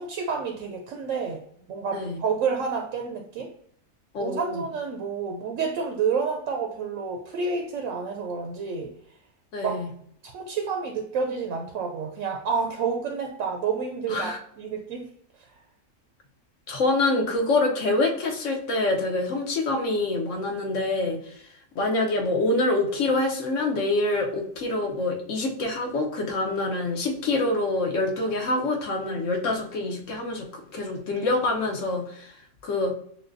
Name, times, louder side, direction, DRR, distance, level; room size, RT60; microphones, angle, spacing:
voice 1, 0.0-1.4 1.7-3.5 4.2-8.9 9.6-9.8 10.2-15.1 15.4-15.5, right 5 dB, 70° right, 2 dB, 0.8 m, -29 dB
voice 2, 4.1-4.6 9.5-9.9 14.1-14.4 16.7-21.3 21.8-32.3 32.6-32.9, left 2 dB, 60° left, 2 dB, 1.0 m, -26 dB
6.3 x 2.2 x 2.5 m, 0.66 s
omnidirectional pair, 1.6 m